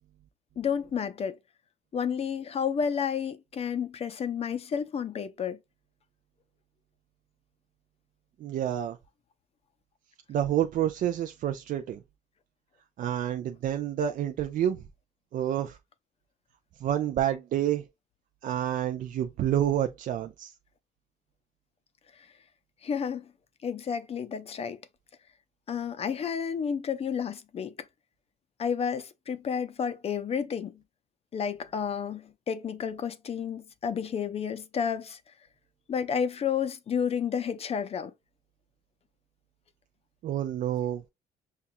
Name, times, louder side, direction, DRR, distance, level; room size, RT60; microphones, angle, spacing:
voice 1, 0.6-1.4 1.9-5.6 22.8-23.3 23.6-24.8 25.7-27.8 28.6-30.8 31.3-35.2 35.9-38.1, left 7 dB, 35° left, 0.5 m, -31 dB
voice 2, 8.4-9.0 10.3-12.0 13.0-14.8 15.3-15.8 16.8-17.8 18.4-20.5 40.2-41.0, right 11 dB, 55° right, 0.4 m, -28 dB
5.5 x 2.3 x 2.6 m
cardioid pair, 110°, 17 cm